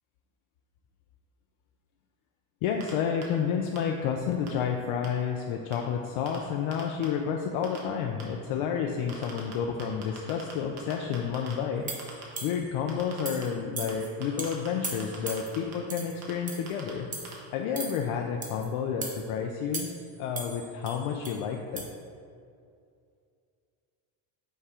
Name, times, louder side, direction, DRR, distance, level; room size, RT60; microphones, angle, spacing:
voice 1, 2.6-11.9 12.4-17.1 17.5-19.9 20.2-21.8, left 7 dB, 75° left, 2 dB, 0.6 m, -30 dB
sound 1, 2.8-2.9 3.2-3.3 3.8-3.9 4.5-4.6 5.0-5.1 5.7-5.8 6.3-6.4 6.7-7.0 7.6-7.8 8.2-8.3 9.1-9.5 9.8-10.5 10.8-11.5 12.0-12.2 12.9-13.4 13.9-14.0 14.2-15.7 16.2-16.3 16.7-16.9 17.2-17.3, right 7 dB, 50° right, 1.3 m, -42 dB
sound 2, 11.9-12.7 13.3-13.5 13.8-14.1 14.4-14.5 14.8-15.5 15.9-16.1 16.5-16.7 17.1-17.3 17.8-18.0 18.4-18.7 19.0-19.2 19.7-20.1 20.4-21.4 21.8-21.9, right 3 dB, 15° right, 0.5 m, -37 dB
5.5 x 3.6 x 4.8 m, 2.4 s
cardioid pair, 145°, 49 cm